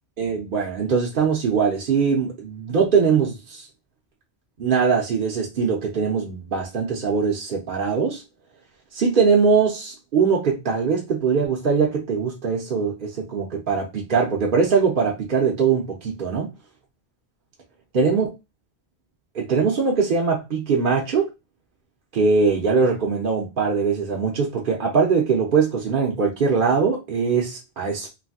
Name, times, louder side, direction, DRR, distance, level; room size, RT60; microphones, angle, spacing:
voice 1, 0.2-3.7 4.6-8.2 8.9-16.5 17.9-18.3 19.3-21.3 22.1-28.1, right 5 dB, 55° right, 0.8 m, -21 dB
3.2 x 2.7 x 2.7 m
omnidirectional pair, 1.1 m